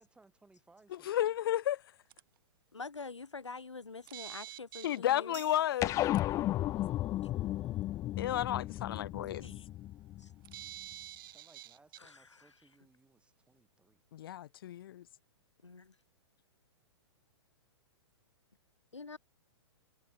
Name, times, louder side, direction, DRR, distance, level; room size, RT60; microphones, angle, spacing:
voice 1, 0.0-1.4 11.3-14.0, right 3 dB, 5° right, 6.8 m, -65 dB
voice 2, 1.0-1.8 4.8-6.0 8.2-9.4 14.1-15.0, left 12 dB, 55° left, 0.8 m, -32 dB
sound 1, 2.1-2.2 4.1-5.0 6.1-6.2 10.4-12.1, right 14 dB, 50° right, 3.4 m, -47 dB
voice 3, 2.7-5.4 9.4-9.7 10.2-10.3 10.9-11.1 12.0-12.5 15.6-15.9 18.9-19.2, left 4 dB, 85° left, 1.1 m, -46 dB
sound 2, 5.3-12.4, right 6 dB, 75° right, 2.2 m, -60 dB
sound 3, 5.8-10.5, left 14 dB, 20° left, 0.6 m, -34 dB
figure-of-eight pair, 115°, 15 cm